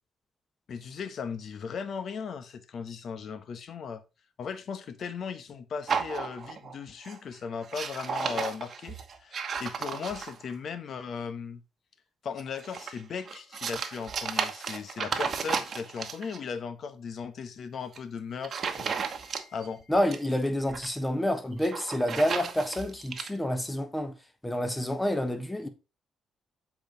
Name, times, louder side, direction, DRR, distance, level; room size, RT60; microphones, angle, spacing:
voice 1, 0.7-4.0 4.4-11.6 12.2-19.9, left 6 dB, 60° left, 1.0 m, -37 dB
sound 1, 5.9-6.8 7.0-7.3 7.6-10.5 12.4-16.4 17.8-18.0 18.4-19.7 19.9-20.9 21.5-23.3, right 6 dB, 50° right, 1.1 m, -34 dB
voice 2, 19.9-24.1 24.4-25.7, left 1 dB, 10° left, 1.3 m, -28 dB
7.7 x 4.7 x 4.0 m
cardioid pair, 90°, 0 cm